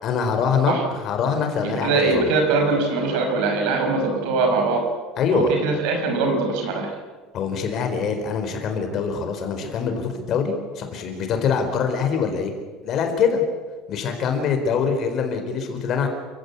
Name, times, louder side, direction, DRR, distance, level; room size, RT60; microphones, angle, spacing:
voice 1, 0.0-2.3 5.2-5.5 7.3-12.5 12.8-13.4 13.9-16.1, left 6 dB, 40° left, 5 dB, 4.4 m, -24 dB
voice 2, 1.6-4.9 5.3-6.9, right 3 dB, 65° right, 2 dB, 6.0 m, -22 dB
29.0 x 16.5 x 8.5 m, 1.4 s
cardioid pair, 165°, 0 cm